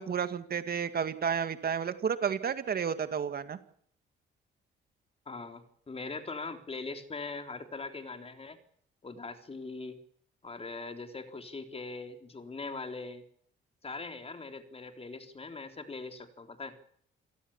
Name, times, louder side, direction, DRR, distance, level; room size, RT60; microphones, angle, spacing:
voice 1, 0.0-3.6, right 7 dB, 50° right, 11 dB, 2.1 m, -31 dB
voice 2, 5.3-8.6 9.0-10.0 10.4-13.2 13.8-16.8, left 3 dB, 30° left, 7 dB, 3.7 m, -41 dB
27.5 x 18.0 x 7.2 m, 0.64 s
cardioid pair, 90°, 20 cm